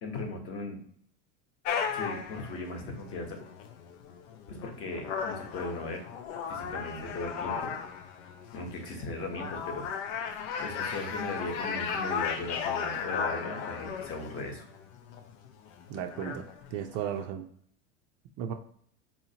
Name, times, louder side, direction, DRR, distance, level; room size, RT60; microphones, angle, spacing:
voice 1, 0.0-0.8 1.9-3.4 4.5-6.0 6.5-7.7 8.5-9.9 10.6-14.6, left 2 dB, 40° left, 3 dB, 1.0 m, -37 dB
sound 1, 1.6-17.2, left 6 dB, 75° left, 0.6 m, -36 dB
voice 2, 15.9-16.4 16.7-17.4 18.4-18.5, right 9 dB, 40° right, 5 dB, 0.5 m, -34 dB
4.1 x 2.8 x 2.8 m, 0.62 s
supercardioid pair, 135°, 36 cm